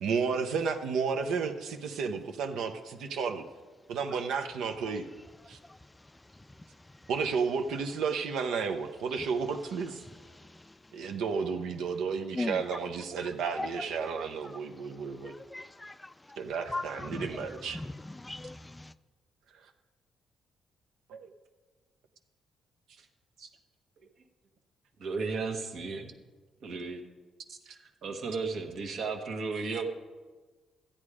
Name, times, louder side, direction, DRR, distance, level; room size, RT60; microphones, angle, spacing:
voice 1, 0.0-3.4 3.9-5.1 5.5-5.6 7.1-10.0 10.9-15.3 16.4-17.8 21.1-21.3, right 5 dB, 85° right, 6 dB, 0.8 m, -32 dB
voice 2, 15.2-16.4 16.7-17.5 17.7-18.9, left 2 dB, 15° left, 14 dB, 0.3 m, -38 dB
voice 3, 25.0-26.1 26.6-27.0 27.5-29.9, right 4 dB, 65° right, 4 dB, 1.4 m, -35 dB
13.0 x 8.8 x 4.9 m, 1.3 s
cardioid pair, 90°, 0 cm